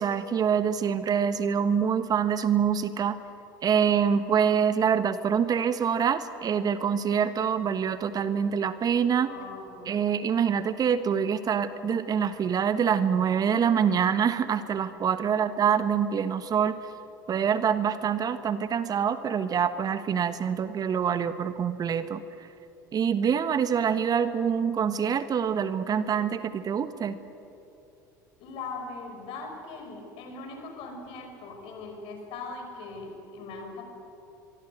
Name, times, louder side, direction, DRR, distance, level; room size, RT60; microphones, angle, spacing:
voice 1, 0.0-3.2 3.6-9.3 9.9-16.8 17.3-22.2 22.9-27.2, right 7 dB, 35° right, 12 dB, 1.3 m, -25 dB
voice 2, 9.2-9.9 15.2-15.4 28.4-33.8, left 3 dB, 60° left, 4 dB, 6.1 m, -40 dB
24.0 x 24.0 x 8.1 m, 2.9 s
hypercardioid pair, 75°, 11 cm